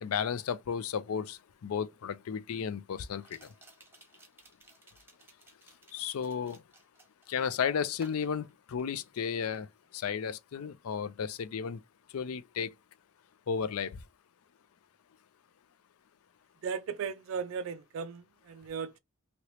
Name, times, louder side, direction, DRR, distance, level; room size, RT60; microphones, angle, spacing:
voice 1, 0.0-3.5 5.9-6.6 7.3-9.7 9.9-11.8 12.1-12.7 13.5-14.0, left 7 dB, 85° left, 0.4 m, -33 dB
sound 1, 1.5-1.6 3.2-7.4 7.9-9.3 9.6-9.9, right 2 dB, 10° right, 0.8 m, -59 dB
voice 2, 16.6-19.0, right 6 dB, 65° right, 0.3 m, -37 dB
3.0 x 2.9 x 2.9 m
head